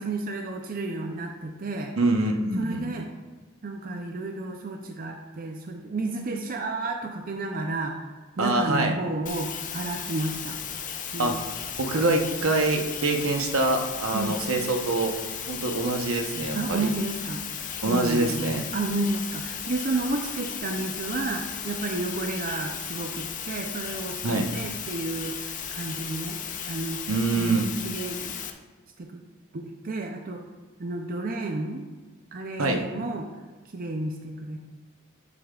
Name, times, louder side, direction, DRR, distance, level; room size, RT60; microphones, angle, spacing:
voice 1, 0.0-1.9 2.5-3.1 3.6-8.1 8.4-10.6 11.1-11.5 14.1-14.4 16.5-17.4 17.8-18.5 18.7-27.0 27.4-28.4 29.0-29.3 29.5-30.4 30.8-31.9 32.3-33.3 33.7-34.6, right 2 dB, 40° right, 3 dB, 0.5 m, -31 dB
voice 2, 2.0-2.9 8.4-8.9 11.2-11.3 11.8-15.1 15.5-16.9 17.8-18.7 24.2-24.5 27.1-27.7 32.6-32.8, right 2 dB, 80° right, 4 dB, 0.9 m, -25 dB
sound 1, 9.3-28.5, left 8 dB, 40° left, 0.5 m, -35 dB
9.9 x 7.5 x 2.4 m, 1.3 s
head